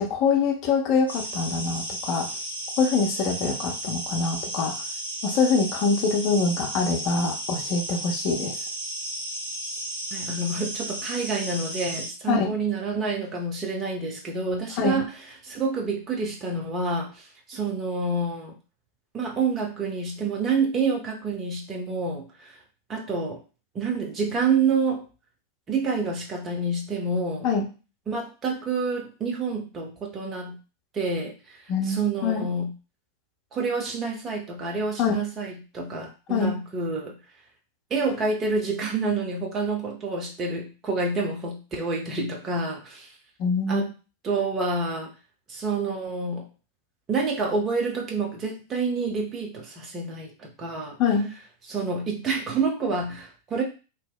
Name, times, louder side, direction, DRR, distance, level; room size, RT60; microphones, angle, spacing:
voice 1, 0.0-2.3 2.8-4.7 5.2-8.6 12.3-12.5 14.8-15.0 27.4-27.7 31.7-32.4 35.0-35.2 36.3-36.5 43.4-43.8 51.0-51.3, left 5 dB, 40° left, 1 dB, 0.6 m, -24 dB
sound 1, 1.1-12.1, right 1 dB, 85° right, 0.9 m, -34 dB
voice 2, 10.1-15.1 15.4-18.5 19.1-22.6 22.9-23.4 23.7-25.0 25.7-27.5 28.1-30.6 30.9-31.6 31.9-32.7 33.5-37.2 37.9-43.1 43.7-43.9 44.2-45.1 45.5-46.5 47.1-51.0 51.7-53.6, right 4 dB, 25° right, 0 dB, 0.7 m, -28 dB
2.8 x 2.0 x 2.2 m, 0.33 s
figure-of-eight pair, 90°, 0 cm